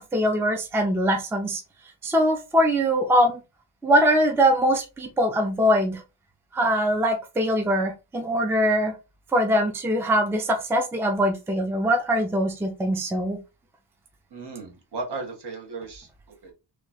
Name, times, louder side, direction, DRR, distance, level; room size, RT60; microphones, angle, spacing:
voice 1, 0.0-1.6 2.0-3.4 3.8-6.0 6.5-8.9 9.3-13.4, equal, 5° right, 3 dB, 0.4 m, -22 dB
voice 2, 14.3-16.5, right 3 dB, 60° right, 1 dB, 1.2 m, -36 dB
3.2 x 2.3 x 4.0 m, 0.28 s
wide cardioid pair, 180°, 46 cm